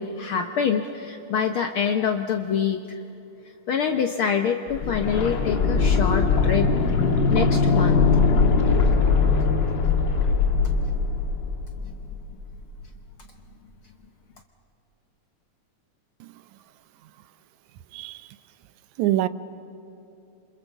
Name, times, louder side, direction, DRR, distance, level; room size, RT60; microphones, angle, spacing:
voice 1, 0.0-3.0 3.7-6.7 7.3-8.1, left 7 dB, 70° left, 1.3 m, -25 dB
sound 1, 4.7-12.5 12.8-12.9, left 4 dB, 45° left, 1.8 m, -21 dB
voice 2, 19.0-19.3, right 14 dB, 85° right, 2.1 m, -24 dB
27.0 x 27.0 x 7.2 m
omnidirectional pair, 3.3 m